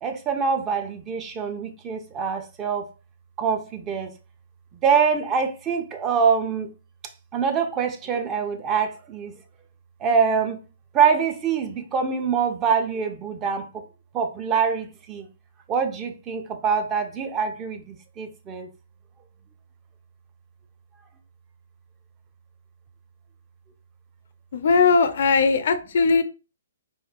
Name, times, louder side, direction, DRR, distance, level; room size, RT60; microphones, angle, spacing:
voice 1, 0.0-2.9 3.4-4.1 4.8-6.7 7.3-9.3 10.0-10.6 10.9-13.7 14.1-15.3 15.7-18.7, right 6 dB, 20° right, 0.4 m, -24 dB
voice 2, 24.5-26.2, left 4 dB, 55° left, 0.4 m, -19 dB
3.5 x 2.2 x 2.5 m
figure-of-eight pair, 130°, 0 cm